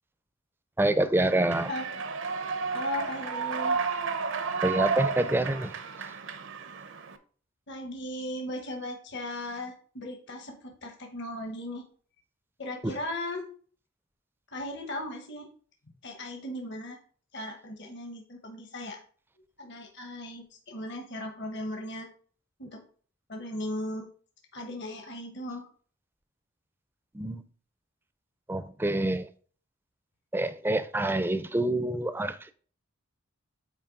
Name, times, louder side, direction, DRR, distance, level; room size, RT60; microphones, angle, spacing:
voice 1, 0.8-1.7 4.6-5.7 12.8-12.9 27.1-27.4 28.5-29.3 30.3-32.5, right 1 dB, 10° right, 0.5 m, -27 dB
Human voice / Clapping / Cheering, 1.2-7.2, right 5 dB, 60° right, 0.7 m, -32 dB
voice 2, 2.7-3.8 7.7-11.8 12.6-13.4 14.5-15.5 16.0-17.0 17.3-19.0 19.6-22.1 22.6-22.8 23.3-24.1 24.5-25.7, left 1 dB, 55° left, 1.1 m, -37 dB
8.7 x 3.1 x 5.1 m
head